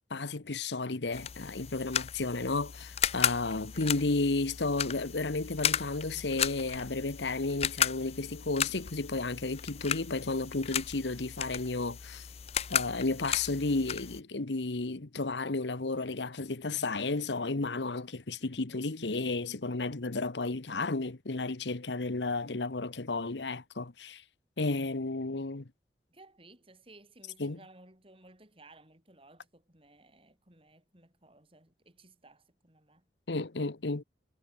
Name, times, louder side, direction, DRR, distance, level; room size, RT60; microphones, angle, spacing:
voice 1, 0.1-12.3 12.7-24.2 24.6-25.7 27.4-27.6 33.3-34.0, left 3 dB, 85° left, 1.2 m, -32 dB
sound 1, 1.1-14.2, left 9 dB, 35° left, 0.4 m, -35 dB
voice 2, 3.7-4.1 26.1-33.1, right 2 dB, 30° right, 4.9 m, -58 dB
head